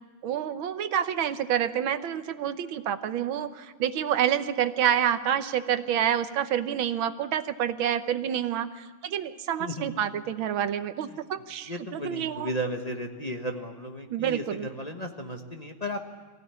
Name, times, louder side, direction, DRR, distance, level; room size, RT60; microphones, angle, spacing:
voice 1, 0.2-12.5 14.1-14.7, right 9 dB, 90° right, 10 dB, 1.8 m, -28 dB
voice 2, 9.6-9.9 11.1-11.2 11.7-16.1, equal, 25° left, 3 dB, 1.2 m, -34 dB
23.5 x 16.5 x 9.8 m, 1.4 s
omnidirectional pair, 2.1 m